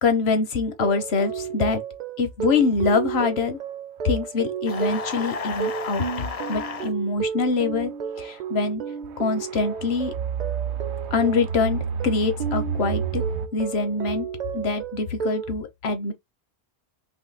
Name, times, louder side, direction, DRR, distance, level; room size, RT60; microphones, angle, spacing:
voice 1, 0.0-1.8 2.2-3.6 4.0-6.0 6.5-7.9 8.2-8.8 9.2-10.1 11.1-13.2 13.5-14.3 14.5-16.1, left 4 dB, 70° left, 1.1 m, -24 dB
sound 1, 0.7-15.5, right 7 dB, 50° right, 0.6 m, -32 dB
sound 2, 4.1-4.2 4.9-5.3 6.3-6.4 8.2-8.5 9.0-13.5, right 6 dB, 85° right, 0.9 m, -30 dB
sound 3, 4.7-6.9, left 5 dB, 45° left, 0.5 m, -32 dB
4.2 x 3.0 x 4.0 m
omnidirectional pair, 1.1 m